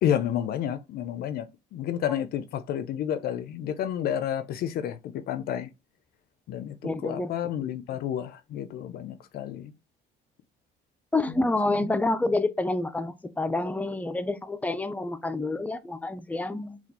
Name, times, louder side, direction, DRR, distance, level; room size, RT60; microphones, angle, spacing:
voice 1, 0.0-5.7 6.5-6.7 7.0-9.7 11.2-11.3 11.7-11.9, left 10 dB, 65° left, 0.5 m, -30 dB
voice 2, 6.8-7.3 11.1-16.8, left 2 dB, 10° left, 0.5 m, -28 dB
4.2 x 2.4 x 4.1 m
cardioid pair, 110°, 17 cm